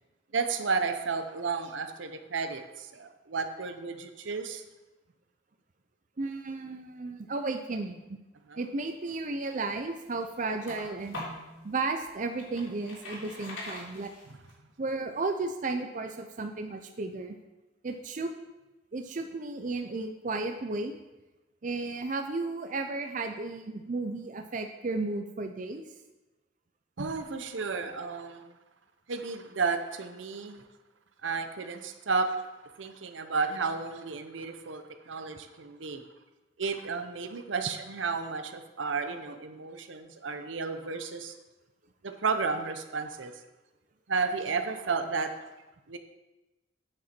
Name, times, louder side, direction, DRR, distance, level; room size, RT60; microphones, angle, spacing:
voice 1, 0.3-4.6 8.5-8.6 27.0-28.5 29.1-30.6 31.2-32.5 32.7-36.0 36.6-41.3 42.0-43.4 44.1-45.5 45.9-46.0, right 4 dB, 80° right, 8 dB, 0.8 m, -32 dB
voice 2, 6.2-8.2 8.6-11.2 11.6-14.1 14.8-17.4 17.8-18.3 18.9-20.9 21.6-25.8, right 3 dB, 40° right, 6 dB, 0.5 m, -34 dB
sound 1, 9.4-11.5 12.0-14.5, left 1 dB, 90° left, 3.5 m, -43 dB
8.6 x 7.5 x 4.4 m, 1.1 s
head